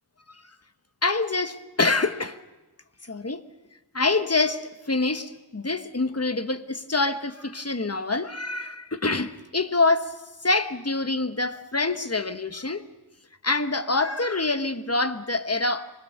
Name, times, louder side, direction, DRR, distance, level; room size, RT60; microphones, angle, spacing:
voice 1, 1.0-2.4 3.1-3.4 3.9-10.2 10.4-12.8 13.4-15.9, left 3 dB, 40° left, 1.1 m, -26 dB
25.0 x 21.0 x 6.7 m
wide cardioid pair, 40°, 39 cm